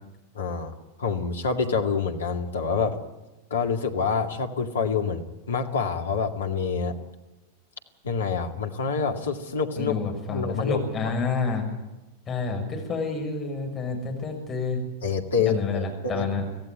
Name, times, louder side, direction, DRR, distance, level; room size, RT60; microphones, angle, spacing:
voice 1, 0.3-0.7 1.0-3.0 3.5-7.0 8.0-9.9 10.3-11.1 15.0-16.3, left 5 dB, 70° left, 4 dB, 2.2 m, -27 dB
voice 2, 9.8-11.6 12.3-14.8 15.4-16.5, left 4 dB, 25° left, 1 dB, 6.6 m, -29 dB
25.0 x 15.5 x 9.8 m, 1.0 s
figure-of-eight pair, 90°, 0 cm